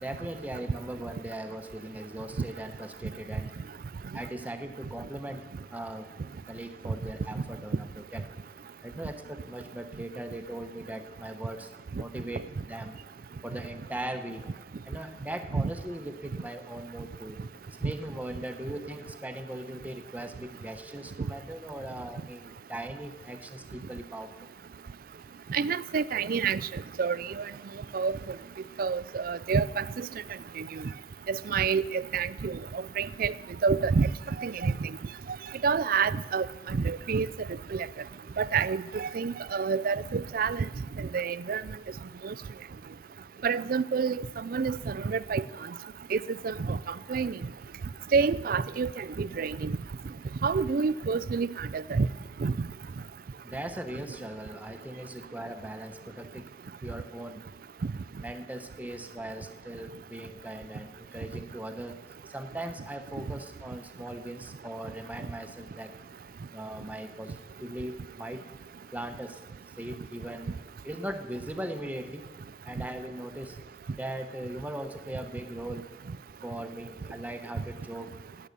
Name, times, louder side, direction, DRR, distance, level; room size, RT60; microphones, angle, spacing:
voice 1, 0.0-3.6 4.1-6.2 6.5-8.2 8.8-13.0 13.4-14.5 14.9-17.4 17.8-24.5 53.4-56.5 56.8-57.5 58.2-62.0 62.3-65.9 66.5-68.5 68.9-69.4 69.8-70.6 70.8-72.3 72.6-73.6 73.9-75.9 76.4-78.2, right 1 dB, 10° right, 0.9 m, -39 dB
voice 2, 25.5-26.6 27.0-27.4 27.9-28.2 28.8-30.1 30.6-30.7 31.3-33.3 33.6-34.1 34.4-34.9 35.6-37.3 37.7-37.9 38.4-40.7 41.1-41.6 42.2-42.3 43.4-45.4 46.1-46.8 47.1-47.3 48.1-49.7 50.4-52.1 52.4-52.5, right 5 dB, 50° right, 0.4 m, -28 dB
17.5 x 8.7 x 6.7 m
head